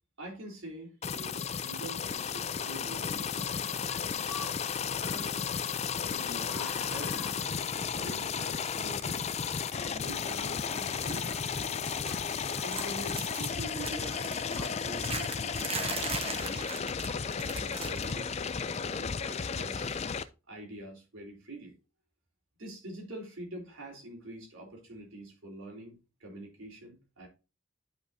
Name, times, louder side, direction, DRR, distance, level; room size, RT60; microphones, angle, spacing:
voice 1, 0.2-4.4 5.0-5.4 6.1-9.2 9.8-11.8 12.5-16.9 17.4-18.3 18.8-20.0 20.5-21.7 22.6-27.3, right 1 dB, 85° right, 3.7 m, -45 dB
sound 1, 1.0-20.2, left 6 dB, 30° left, 0.4 m, -34 dB
sound 2, 3.6-13.1, left 4 dB, 5° left, 2.3 m, -50 dB
sound 3, 10.9-11.3 11.6-12.4 12.6-18.2 18.5-18.7 19.8-19.9, right 4 dB, 30° right, 1.1 m, -40 dB
11.0 x 5.4 x 2.7 m
head